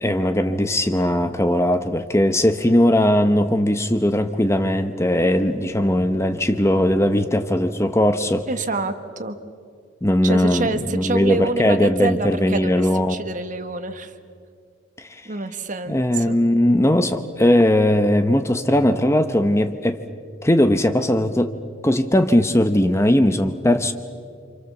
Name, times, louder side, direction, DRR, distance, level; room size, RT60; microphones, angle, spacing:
voice 1, 0.0-8.4 10.0-13.2 15.0-15.2 15.9-20.0 20.4-21.5 21.8-23.9, left 1 dB, 15° left, 9 dB, 0.8 m, -19 dB
voice 2, 8.4-9.4 10.2-14.1 15.2-16.3, right 3 dB, 40° right, 9 dB, 1.5 m, -27 dB
28.5 x 26.5 x 7.2 m, 2.2 s
head